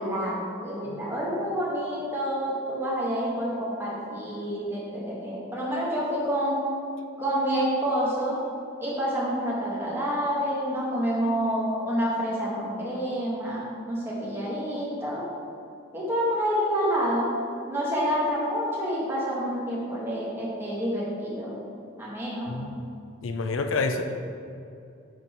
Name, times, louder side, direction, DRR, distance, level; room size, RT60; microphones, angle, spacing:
voice 1, 0.0-6.6 7.2-8.4 8.8-15.2 15.9-17.3 17.7-21.6 22.0-22.6, equal, 10° right, -7 dB, 1.8 m, -28 dB
voice 2, 22.5-22.8 23.2-24.0, left 3 dB, 80° left, 5 dB, 0.6 m, -28 dB
10.5 x 4.4 x 4.5 m, 2.5 s
head